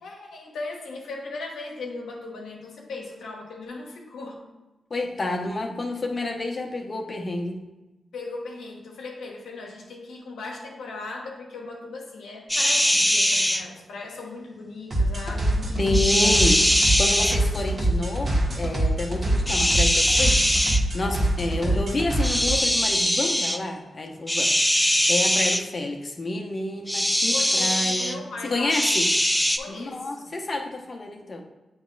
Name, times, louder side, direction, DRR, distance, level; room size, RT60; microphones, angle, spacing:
voice 1, 0.0-4.4 8.1-16.4 21.4-21.8 27.3-28.8 29.6-30.3, left 3 dB, 85° left, -1 dB, 1.0 m, -38 dB
voice 2, 4.9-7.6 15.8-16.6 17.0-28.2 28.4-29.1 29.7-31.4, left 2 dB, 50° left, 3 dB, 0.8 m, -29 dB
sound 1, 12.5-13.6 15.9-17.4 19.5-20.8 22.2-23.6 24.3-25.6 26.9-28.2 28.7-29.6, equal, 5° left, 0.5 m, -21 dB
sound 2, 14.9-22.6, right 1 dB, 55° right, 1.4 m, -25 dB
7.9 x 3.2 x 3.8 m, 1.1 s
supercardioid pair, 45°, 0 cm